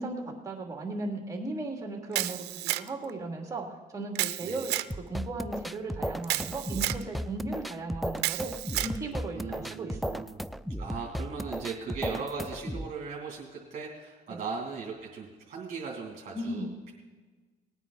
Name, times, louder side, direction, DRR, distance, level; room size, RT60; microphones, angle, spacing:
voice 1, 0.0-3.6 3.9-4.8 5.1-10.3 14.3-14.4 16.3-16.8, right 2 dB, 20° right, 2 dB, 2.7 m, -36 dB
Camera, 2.1-3.1 4.1-4.9 6.2-7.0 8.2-9.0, right 17 dB, 80° right, 0.5 m, -31 dB
sound 1, 4.9-12.9, equal, ahead, 0.3 m, -35 dB
voice 2, 9.3-10.4 10.8-16.9, right 5 dB, 45° right, -2 dB, 2.7 m, -38 dB
19.0 x 9.1 x 4.1 m, 1.3 s
cardioid pair, 110°, 17 cm